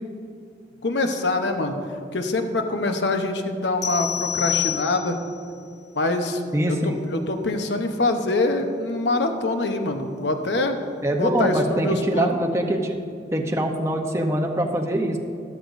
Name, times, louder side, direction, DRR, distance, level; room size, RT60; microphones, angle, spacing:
voice 1, 0.8-1.7 2.1-5.2 5.9-6.4 6.7-10.8 11.2-12.4, left 2 dB, 85° left, 6 dB, 0.9 m, -24 dB
sound 1, 3.8-5.3, left 10 dB, 40° left, 1.2 m, -27 dB
voice 2, 6.5-7.0 11.0-13.0 13.3-15.2, right 1 dB, 15° right, 2 dB, 0.7 m, -23 dB
13.5 x 13.0 x 2.6 m, 2.5 s
head